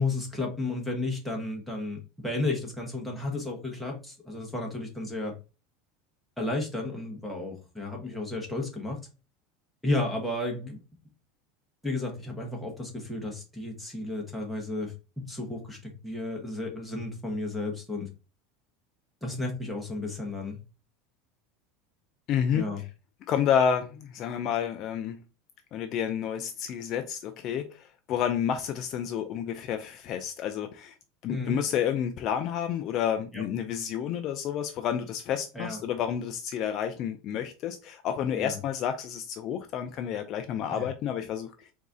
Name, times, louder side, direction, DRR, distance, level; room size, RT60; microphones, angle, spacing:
voice 1, 0.0-5.3 6.4-9.0 9.8-10.8 11.8-14.9 15.3-18.1 19.2-20.6 22.5-22.8 31.3-31.6 33.3-33.4 35.5-35.8 38.3-38.6 40.7-40.9, left 2 dB, ahead, 1.2 m, -33 dB
voice 2, 22.3-22.8 23.3-25.2 25.7-30.9 31.2-41.5, left 8 dB, 40° left, 0.4 m, -30 dB
4.0 x 2.7 x 3.6 m
supercardioid pair, 145°, 0 cm